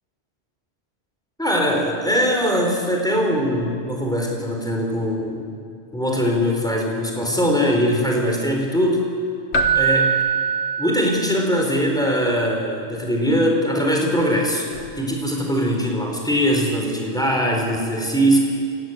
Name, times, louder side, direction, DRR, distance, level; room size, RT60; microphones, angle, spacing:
voice 1, 1.4-5.6 5.9-9.1 9.7-10.2 10.8-14.7 15.0-18.4, equal, 5° left, 0 dB, 4.1 m, -21 dB
Keyboard (musical), 9.5-11.5 14.7-14.9, right 6 dB, 75° left, 1.6 m, -22 dB
23.0 x 17.5 x 9.4 m, 2.3 s
omnidirectional pair, 1.1 m